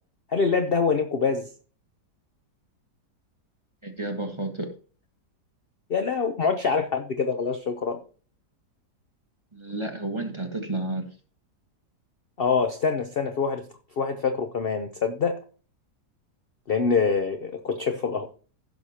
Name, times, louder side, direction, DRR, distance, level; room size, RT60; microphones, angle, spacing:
voice 1, 0.3-1.5 5.9-8.0 12.4-13.7 14.0-15.4 16.7-18.3, left 5 dB, 50° left, 0.7 m, -25 dB
voice 2, 3.8-4.7 9.5-11.1, right 2 dB, 20° right, 1.2 m, -31 dB
15.5 x 6.4 x 2.9 m
omnidirectional pair, 1.8 m